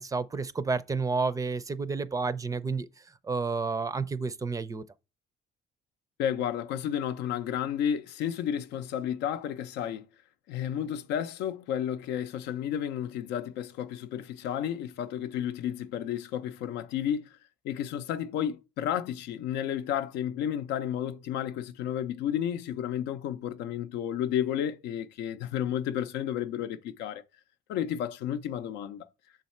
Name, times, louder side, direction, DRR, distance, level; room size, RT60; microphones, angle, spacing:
voice 1, 0.0-2.9 3.2-4.8, right 4 dB, 20° right, 0.4 m, -30 dB
voice 2, 6.2-10.1 10.5-17.4 17.6-27.2 27.7-29.1, left 10 dB, 85° left, 0.5 m, -32 dB
6.3 x 4.0 x 4.2 m
cardioid pair, 110°, 17 cm